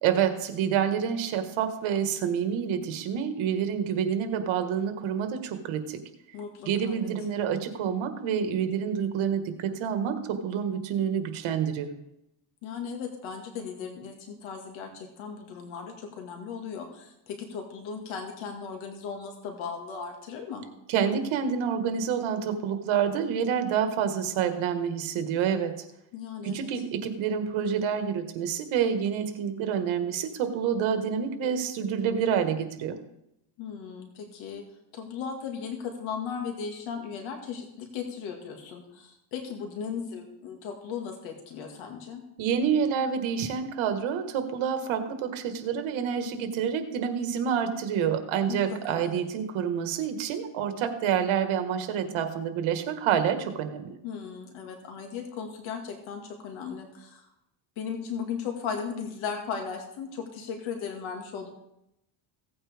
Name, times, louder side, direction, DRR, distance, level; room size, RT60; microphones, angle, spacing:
voice 1, 0.0-6.0 6.7-11.9 20.9-25.7 26.4-33.0 42.4-53.9, right 8 dB, 85° right, 7 dB, 1.7 m, -28 dB
voice 2, 6.3-7.1 12.6-20.6 26.1-26.7 33.6-34.6 34.9-42.2 48.5-49.2 54.0-57.2 57.8-61.5, left 6 dB, 85° left, 3 dB, 2.1 m, -37 dB
16.5 x 8.9 x 3.5 m, 0.83 s
cardioid pair, 115°, 47 cm